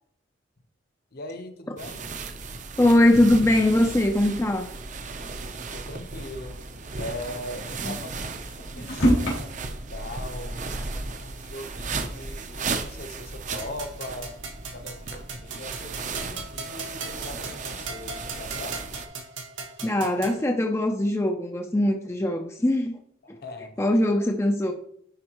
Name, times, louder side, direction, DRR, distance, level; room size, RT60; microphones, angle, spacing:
voice 1, 1.1-2.0 5.7-6.6 7.0-8.3 8.7-14.3 14.6-18.8 23.2-23.8, left 1 dB, 50° left, 7 dB, 0.8 m, -40 dB
sound 1, 1.8-19.1, right 4 dB, 40° right, 0.6 m, -35 dB
voice 2, 2.8-4.7 7.8-7.9 10.7-11.0 19.8-23.0 23.3-23.4 23.8-24.7, left 1 dB, 15° left, 4 dB, 0.4 m, -21 dB
sound 2, 4.9-5.3 5.7-5.8 6.0-6.1 6.7-9.3, equal, 90° left, 2.9 m, -28 dB
sound 3, 13.6-20.4, right 4 dB, 80° right, 1.4 m, -39 dB
10.5 x 4.3 x 3.0 m, 0.67 s
head